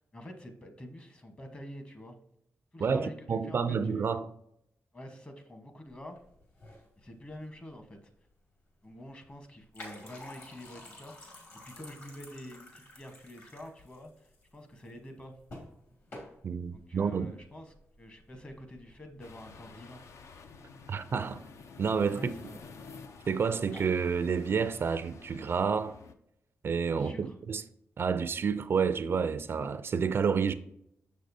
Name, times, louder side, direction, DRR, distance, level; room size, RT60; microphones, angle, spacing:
voice 1, 0.1-2.2 2.7-4.1 4.9-6.2 7.0-8.1 8.8-11.4 11.6-15.3 16.7-20.0 22.2-22.6 27.0-27.4, left 1 dB, 25° left, 1.1 m, -47 dB
voice 2, 2.8-4.3 16.4-17.3 20.9-21.4 21.8-22.3 23.3-26.0 26.6-27.6 28.0-30.5, right 6 dB, 50° right, 0.4 m, -29 dB
sound 1, 5.9-25.4, left 1 dB, 50° left, 2.2 m, -53 dB
sound 2, 19.2-26.1, left 4 dB, 70° left, 0.5 m, -51 dB
6.5 x 6.4 x 2.6 m
cardioid pair, 105°, 5 cm